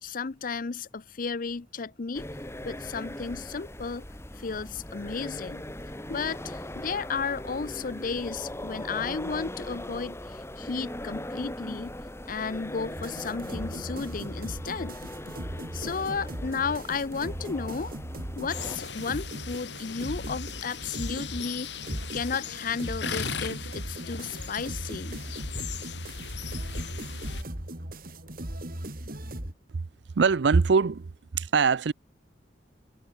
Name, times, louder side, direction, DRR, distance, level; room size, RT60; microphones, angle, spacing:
voice 1, 0.0-2.2 2.6-4.1 4.4-5.6 6.1-12.0 12.3-14.9 15.7-17.9 18.4-21.7 22.1-25.2, left 5 dB, 50° left, 0.6 m, -33 dB
sound 1, 2.1-18.8, left 1 dB, 15° left, 4.6 m, -40 dB
sound 2, 13.0-29.5, right 1 dB, 55° right, 3.5 m, -39 dB
sound 3, 18.5-27.4, left 5 dB, 80° left, 4.8 m, -37 dB
voice 2, 30.2-31.9, right 5 dB, 75° right, 0.5 m, -22 dB
head